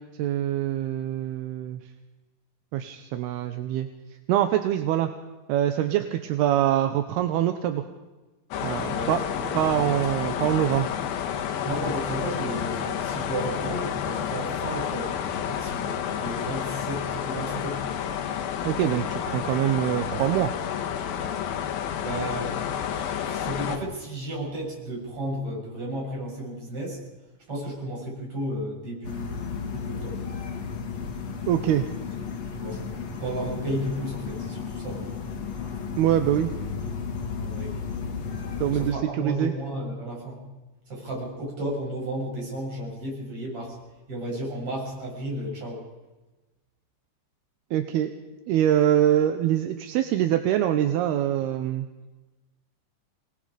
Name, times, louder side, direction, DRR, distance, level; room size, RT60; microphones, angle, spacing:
voice 1, 0.0-1.8 2.7-3.9 4.3-5.1 5.5-7.8 8.6-9.2 9.5-10.9 18.6-20.5 31.5-31.9 36.0-36.5 38.6-39.5 47.7-48.1 48.5-51.9, right 11 dB, 75° right, 7 dB, 2.6 m, -24 dB
sound 1, 8.5-23.8, left 9 dB, 65° left, 2.7 m, -30 dB
voice 2, 8.8-10.4 11.6-15.2 15.5-18.0 22.0-27.0 27.5-30.2 32.6-32.9 33.2-35.1 37.4-37.7 38.7-40.4 40.9-43.8 44.1-45.8, right 1 dB, 30° right, -2 dB, 7.9 m, -33 dB
sound 2, 29.0-38.9, left 5 dB, 50° left, 2.2 m, -33 dB
26.5 x 19.5 x 5.1 m, 1.2 s
omnidirectional pair, 5.2 m